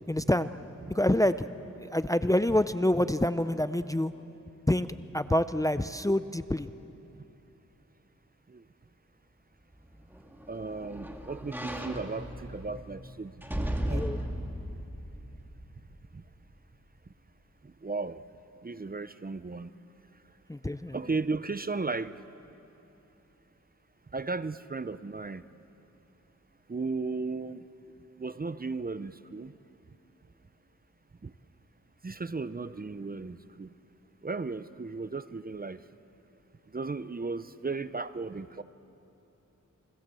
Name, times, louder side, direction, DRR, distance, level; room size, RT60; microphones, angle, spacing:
voice 1, 0.1-0.5 0.9-1.5 1.8-4.1 4.7-4.9 5.1-6.7 13.9-14.2 20.5-21.0, left 1 dB, 10° left, 0.5 m, -26 dB
sound 1, 9.8-16.1 16.6-16.7, equal, 5° right, 2.1 m, -37 dB
voice 2, 10.5-14.1 16.1-16.2 17.6-18.2 18.6-19.7 20.9-22.1 24.1-25.4 26.7-27.6 28.2-29.5 31.2-31.3 32.0-33.7 34.2-35.8 36.7-38.6, right 3 dB, 30° right, 0.6 m, -35 dB
29.0 x 23.0 x 7.7 m
wide cardioid pair, 100°, 31 cm